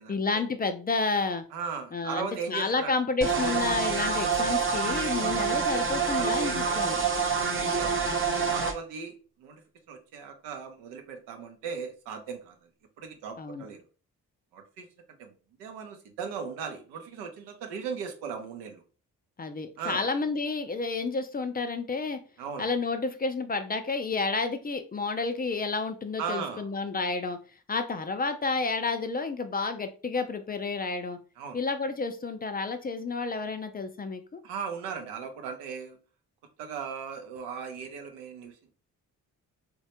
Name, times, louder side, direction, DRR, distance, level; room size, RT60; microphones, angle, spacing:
voice 1, 0.1-1.4 1.9-7.0 13.4-13.6 19.4-22.2 22.6-27.4 27.7-31.2 31.5-34.4, left 4 dB, 25° left, 8 dB, 0.4 m, -30 dB
voice 2, 1.5-2.9 3.3-3.6 5.1-5.4 6.2-7.0 7.5-9.6 9.9-12.7 13.0-13.8 14.5-14.9 15.2-18.8 19.8-20.0 22.4-22.7 26.2-26.7 31.4-31.6 34.4-36.0 36.6-38.7, right 6 dB, 90° right, 5 dB, 0.6 m, -38 dB
sound 1, 3.2-8.7, right 5 dB, 30° right, 0.7 m, -27 dB
3.2 x 2.1 x 2.8 m, 0.37 s
hypercardioid pair, 45°, 40 cm